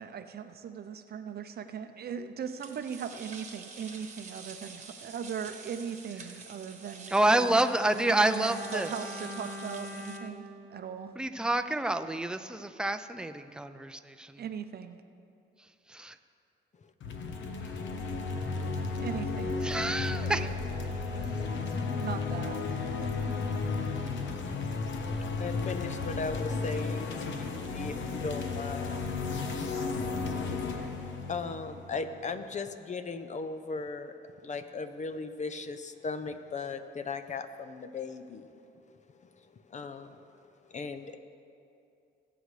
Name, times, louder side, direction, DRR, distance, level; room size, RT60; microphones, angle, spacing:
voice 1, 0.0-7.6 8.1-11.1 14.4-15.0 19.0-19.6 22.0-22.9 29.5-29.9, right 7 dB, 50° right, 9 dB, 0.6 m, -39 dB
sound 1, 2.5-10.2, right 4 dB, 35° right, 1.3 m, -48 dB
voice 2, 7.1-8.9 11.2-14.4 15.9-16.2 17.6-17.7 19.6-20.5 21.1-21.4, right 1 dB, 5° right, 8 dB, 0.5 m, -28 dB
Bowed string instrument, 7.3-11.7 12.0-12.2, left 1 dB, 10° left, 1.2 m, -44 dB
sound 2, 17.0-32.4, left 4 dB, 70° left, 1.0 m, -33 dB
voice 3, 25.4-29.1 30.0-30.4 31.3-34.1 34.4-38.5 39.7-40.2 40.7-41.2, left 4 dB, 35° left, 9 dB, 0.7 m, -37 dB
20.0 x 8.0 x 3.3 m, 2.6 s
cardioid pair, 90°, 20 cm